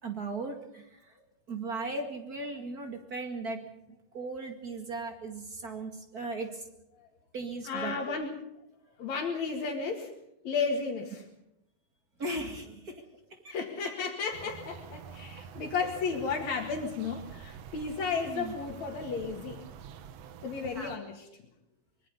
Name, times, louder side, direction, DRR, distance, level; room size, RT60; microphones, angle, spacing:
voice 1, 0.0-1.1 1.5-6.6 7.3-8.2 12.2-13.0 13.4-13.6 15.3-15.7 18.3-18.5 20.8-21.0, right 3 dB, 35° right, 4 dB, 2.0 m, -38 dB
voice 2, 7.7-8.3 9.0-10.1 10.4-11.2 13.5-19.6 20.4-21.3, left 5 dB, 60° left, -1 dB, 3.2 m, -33 dB
sound 1, 14.3-21.0, right 7 dB, 65° right, 1.8 m, -47 dB
24.5 x 22.5 x 5.4 m, 0.84 s
omnidirectional pair, 3.9 m